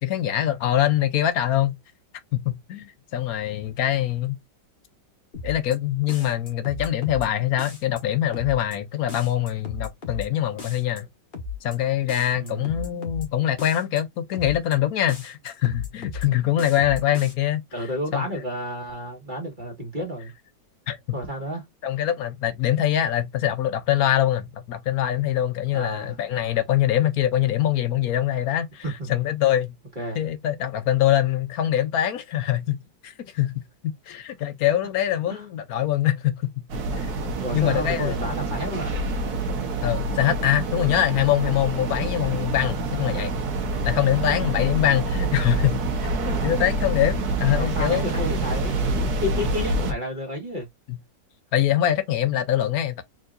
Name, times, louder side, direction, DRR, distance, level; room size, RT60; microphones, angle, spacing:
voice 1, 0.0-1.8 2.3-4.4 5.4-11.1 11.6-17.6 18.1-18.3 20.9-21.0 21.8-29.7 30.2-33.6 34.1-36.6 37.0-37.1 37.5-38.2 39.8-43.3 43.8-45.8 46.2-48.1 50.9-51.0 51.5-53.0, left 12 dB, 65° left, 1.0 m, -23 dB
sound 1, 5.3-5.8 6.1-7.3 7.6-8.0 8.3-8.8 9.1-10.3 10.6-11.0 11.3-11.8 12.1-13.3 13.6-14.0 14.3-14.8 15.1-16.3 16.6-17.3, left 5 dB, 30° left, 1.2 m, -35 dB
voice 2, 12.3-12.9 17.7-20.3 21.1-21.6 25.7-26.1 28.8-29.1 30.0-30.2 35.3-35.4 37.4-39.0 47.5-50.7, equal, 25° right, 1.8 m, -31 dB
sound 2, 36.7-49.9, right 2 dB, 65° right, 1.5 m, -27 dB
4.5 x 3.7 x 2.5 m
omnidirectional pair, 1.9 m